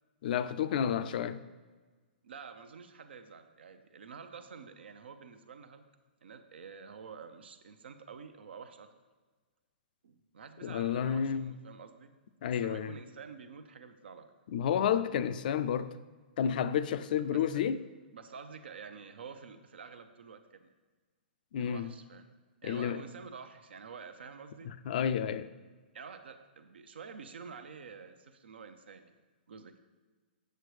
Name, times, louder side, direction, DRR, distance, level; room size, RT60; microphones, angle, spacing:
voice 1, 0.2-1.4 10.6-11.5 12.4-12.9 14.5-16.0 16.4-17.8 21.5-21.9 22.6-23.0 24.7-25.5, left 8 dB, 55° left, 0.4 m, -31 dB
voice 2, 2.2-5.8 6.2-8.9 10.0-12.1 12.6-14.3 17.3-17.4 18.1-20.7 21.6-22.3 22.6-24.7 25.9-29.1 29.5-29.8, right 6 dB, 80° right, 0.7 m, -49 dB
7.7 x 6.8 x 3.2 m
hypercardioid pair, 150°, 6 cm